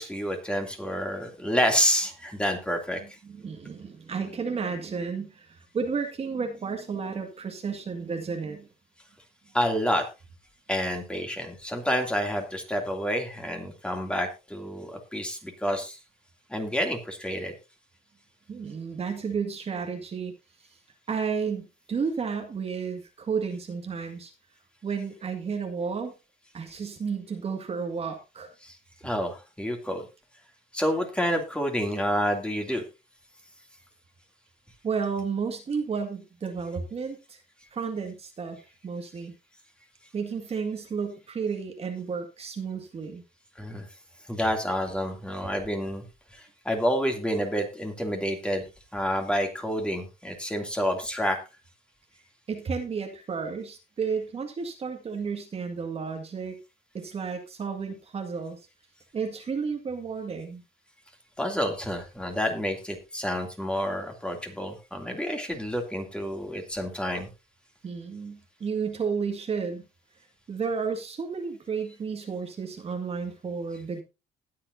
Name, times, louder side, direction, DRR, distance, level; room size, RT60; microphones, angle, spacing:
voice 1, 0.0-3.0 9.5-10.1 10.7-16.0 16.5-17.5 28.6-28.8 29.0-30.1 30.7-32.8 43.6-43.9 44.2-46.0 46.3-48.7 48.9-51.4 61.4-67.3, equal, 5° left, 3 dB, 2.7 m, -29 dB
voice 2, 3.2-8.7 18.5-20.3 21.1-24.3 24.8-26.1 26.5-28.5 34.8-37.4 37.7-38.6 38.8-39.3 40.1-43.2 52.5-56.6 56.9-58.6 59.1-60.6 67.8-69.8 70.5-74.0, right 5 dB, 35° right, 4 dB, 1.9 m, -32 dB
20.0 x 7.6 x 2.7 m, 0.27 s
cardioid pair, 110°, 17 cm